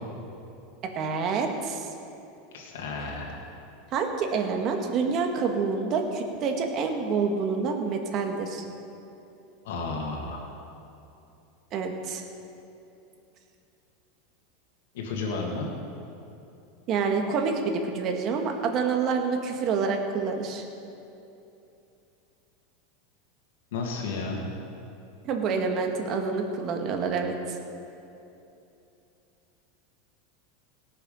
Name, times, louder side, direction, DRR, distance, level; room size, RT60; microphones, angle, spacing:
voice 1, 0.8-1.9 3.9-8.6 11.7-12.2 16.9-20.7 25.2-27.4, right 5 dB, 45° right, 3 dB, 1.8 m, -27 dB
voice 2, 2.5-3.3 9.6-10.4 14.9-15.7 23.7-24.4, left 3 dB, 75° left, -1 dB, 2.4 m, -32 dB
18.0 x 6.9 x 5.7 m, 2.8 s
hypercardioid pair, 100°, 0 cm